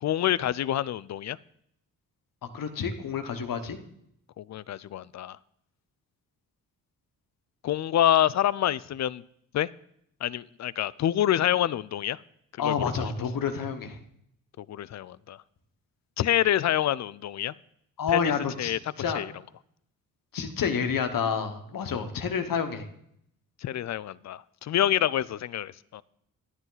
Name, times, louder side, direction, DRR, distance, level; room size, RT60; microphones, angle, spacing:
voice 1, 0.0-1.4 4.4-5.4 7.6-9.2 9.5-9.7 10.2-12.2 12.5-13.0 14.6-15.4 16.2-17.5 18.1-18.3 18.6-18.8 19.1-19.3 23.6-26.0, left 11 dB, 50° left, 21 dB, 0.4 m, -27 dB
voice 2, 2.5-3.8 12.6-14.0 18.0-19.2 20.3-22.8, left 6 dB, 65° left, 7 dB, 1.2 m, -29 dB
11.0 x 9.8 x 4.0 m, 0.72 s
cardioid pair, 75°, 36 cm